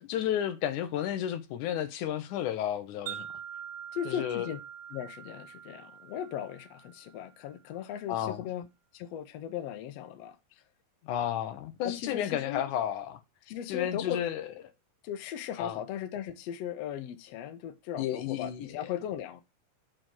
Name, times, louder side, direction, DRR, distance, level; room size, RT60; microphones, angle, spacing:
voice 1, 0.0-3.3 4.1-4.5 8.1-8.4 11.0-13.2 13.7-14.5 15.6-15.8 18.0-18.9, left 10 dB, 70° left, 2.1 m, -32 dB
Wind chime, 3.1-7.3, right 9 dB, 85° right, 1.0 m, -44 dB
voice 2, 3.9-4.6 4.9-8.7 8.9-10.6 11.8-12.6 13.5-14.2 15.0-19.4, left 10 dB, 90° left, 1.4 m, -37 dB
6.8 x 4.7 x 6.0 m
omnidirectional pair, 4.1 m